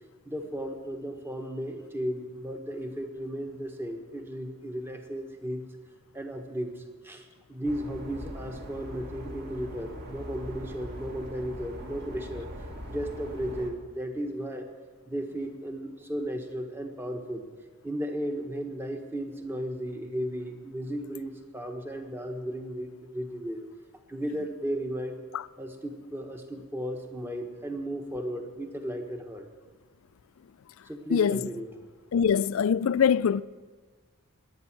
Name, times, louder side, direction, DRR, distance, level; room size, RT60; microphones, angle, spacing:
voice 1, 0.2-5.7 6.1-12.5 12.9-14.7 15.1-17.4 17.8-23.6 24.1-25.2 25.6-29.5 30.8-31.7, equal, 10° right, 1.3 m, -35 dB
sound 1, 7.6-13.7, equal, 50° right, 2.0 m, -41 dB
voice 2, 32.1-33.4, left 7 dB, 70° left, 0.4 m, -23 dB
21.5 x 9.0 x 6.1 m
head